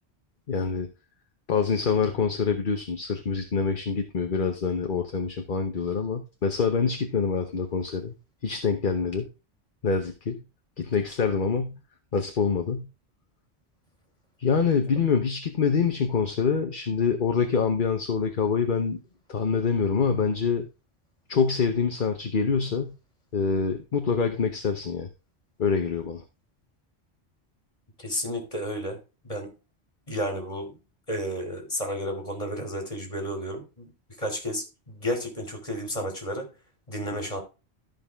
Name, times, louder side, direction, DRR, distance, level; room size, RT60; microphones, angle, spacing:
voice 1, 0.5-0.9 1.5-8.1 8.4-9.3 9.8-10.4 10.8-11.8 12.1-12.9 14.4-19.0 19.3-20.7 21.3-23.0 23.3-25.1 25.6-26.2 37.1-37.2, left 5 dB, 50° left, 5 dB, 1.1 m, -25 dB
voice 2, 28.0-29.0 29.2-29.5 30.1-30.8 31.1-33.9 34.2-36.5 36.9-37.4, equal, 35° left, 4 dB, 3.0 m, -32 dB
13.5 x 5.3 x 3.5 m, 0.30 s
omnidirectional pair, 1.1 m